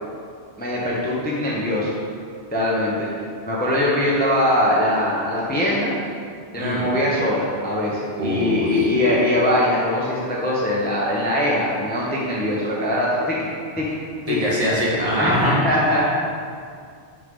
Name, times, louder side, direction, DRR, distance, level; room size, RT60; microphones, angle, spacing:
voice 1, 0.6-1.9 2.5-3.1 3.5-5.9 6.5-13.5 13.8-14.0 14.3-14.4 15.2-16.0, left 1 dB, 10° left, -5 dB, 0.7 m, -21 dB
voice 2, 6.6-6.9 8.2-8.9 14.3-15.5, equal, 35° right, -6 dB, 1.3 m, -23 dB
6.4 x 5.6 x 3.7 m, 2.2 s
omnidirectional pair, 1.2 m